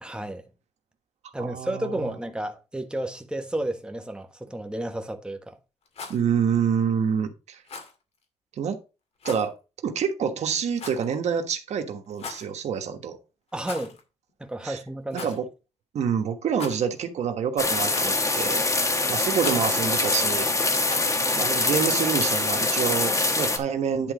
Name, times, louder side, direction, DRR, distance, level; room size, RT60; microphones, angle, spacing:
voice 1, 0.0-0.4 1.3-5.6 13.5-14.0 14.4-15.3, right 1 dB, 10° right, 1.3 m, -32 dB
voice 2, 1.2-2.1 6.1-7.6 8.6-8.8 9.2-9.5 9.8-13.2 14.6-14.8 15.1-15.4 15.9-18.6 19.1-20.5 21.4-24.1, right 7 dB, 90° right, 1.3 m, -27 dB
Rattle, 5.8-6.2 7.6-7.9 9.2-9.5 10.7-11.1 12.1-12.5 13.6-14.0 14.3-14.4 15.1-15.4 16.5-17.0 17.9-18.3 19.4-19.7 20.8-21.2, left 4 dB, 65° left, 2.1 m, -39 dB
sound 1, 17.6-23.6, left 2 dB, 30° left, 1.5 m, -24 dB
10.5 x 3.8 x 5.0 m
cardioid pair, 90°, 11 cm